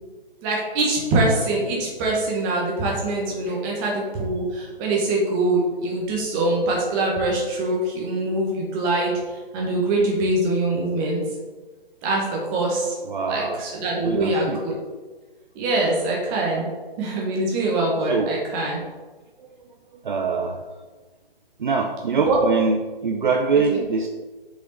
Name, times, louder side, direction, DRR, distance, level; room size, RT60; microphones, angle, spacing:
voice 1, 0.4-11.3 12.0-13.0 13.3-14.7 15.6-16.7 17.0-18.8 22.2-22.4 23.7-23.8, right 2 dB, 20° right, -2 dB, 1.7 m, -23 dB
voice 2, 13.0-13.6 14.0-14.6 18.1-18.3 20.0-20.6 21.6-24.1, right 4 dB, 55° right, 4 dB, 0.6 m, -23 dB
6.7 x 5.6 x 4.2 m, 1.3 s
figure-of-eight pair, 135°, 29 cm